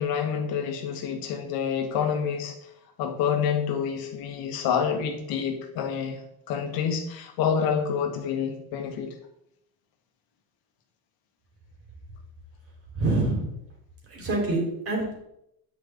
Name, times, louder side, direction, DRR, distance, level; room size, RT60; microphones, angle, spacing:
voice 1, 0.0-2.5 3.0-6.2 6.5-9.1, left 7 dB, 75° left, 4 dB, 1.8 m, -28 dB
voice 2, 12.9-13.5 14.1-15.1, right 2 dB, 40° right, 0 dB, 3.5 m, -26 dB
9.4 x 9.2 x 3.7 m, 0.79 s
cardioid pair, 160°, 36 cm